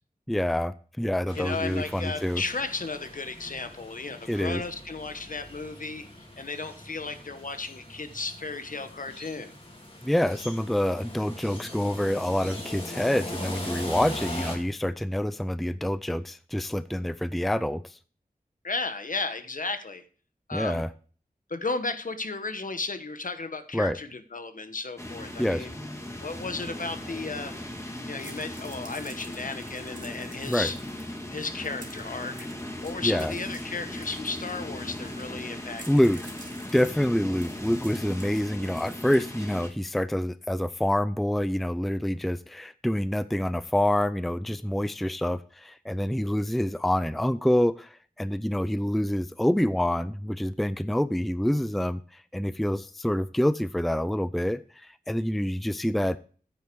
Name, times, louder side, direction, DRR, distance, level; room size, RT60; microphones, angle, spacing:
voice 1, 0.3-2.4 4.3-4.6 10.0-18.0 20.5-20.9 23.7-24.0 25.4-26.0 30.5-30.7 33.0-33.3 35.9-36.2 36.7-56.2, left 1 dB, ahead, 14 dB, 0.4 m, -27 dB
voice 2, 1.3-6.1 6.4-9.5 18.6-20.0 20.5-20.8 21.5-25.7 26.2-27.5 28.1-30.8 31.3-32.5 32.8-35.8, left 3 dB, 65° left, 9 dB, 1.2 m, -34 dB
sound 1, 1.3-14.6, left 1 dB, 40° left, 3.5 m, -41 dB
sound 2, 25.0-39.7, left 1 dB, 20° left, 2.1 m, -38 dB
sound 3, 28.2-35.4 35.7-39.7, right 2 dB, 60° right, 2.8 m, -50 dB
9.7 x 8.4 x 4.6 m, 0.41 s
wide cardioid pair, 75°, 15 cm